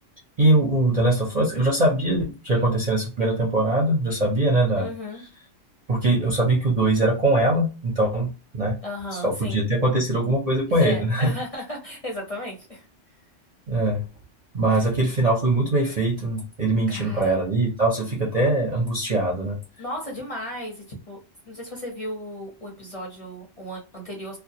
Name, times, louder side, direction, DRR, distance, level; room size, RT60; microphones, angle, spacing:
voice 1, 0.4-4.9 5.9-8.8 9.1-11.3 13.7-14.0 14.5-19.6, right 2 dB, 45° right, 0.6 m, -22 dB
voice 2, 4.8-5.2 8.8-9.6 10.8-12.9 14.7-14.8 16.9-17.4 19.8-21.2 21.5-24.4, left 1 dB, 35° left, 0.7 m, -35 dB
2.3 x 2.2 x 2.7 m
omnidirectional pair, 1.3 m